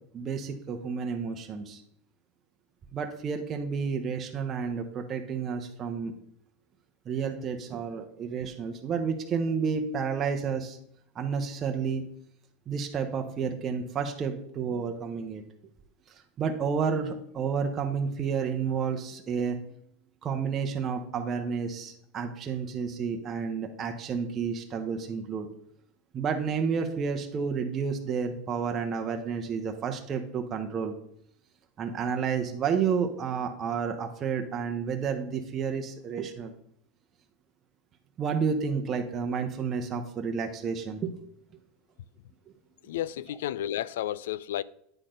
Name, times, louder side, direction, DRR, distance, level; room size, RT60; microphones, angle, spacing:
voice 1, 0.1-1.8 2.9-6.1 7.1-10.8 11.1-12.0 12.7-15.4 16.4-19.7 20.2-25.5 26.1-30.9 31.8-36.5 38.2-41.2, right 6 dB, 30° right, 0.8 m, -30 dB
voice 2, 42.8-44.6, left 12 dB, 85° left, 0.3 m, -32 dB
8.9 x 4.2 x 5.1 m
supercardioid pair, 130°, 0 cm